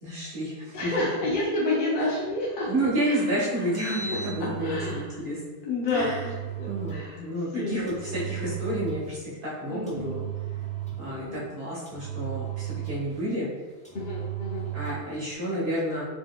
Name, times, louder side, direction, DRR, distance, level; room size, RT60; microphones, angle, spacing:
voice 1, 0.0-1.1 2.0-2.1 2.6-5.4 5.9-6.3 6.7-10.2 11.0-13.5 14.7-16.0, right 1 dB, 55° right, -8 dB, 1.2 m, -30 dB
voice 2, 0.7-2.7 3.0-3.2 4.1-4.2 4.6-5.1 5.6-6.3 6.6-7.2 7.5-7.9 9.6-10.3 11.1-11.4 13.9-14.7, left 2 dB, 60° left, -6 dB, 0.8 m, -29 dB
Engine, 3.6-5.1 5.9-7.1 7.9-9.1 9.9-11.2 11.9-13.2 13.8-15.1, right 10 dB, 10° left, 0.5 m, -35 dB
3.8 x 2.9 x 2.2 m, 1.3 s
omnidirectional pair, 1.1 m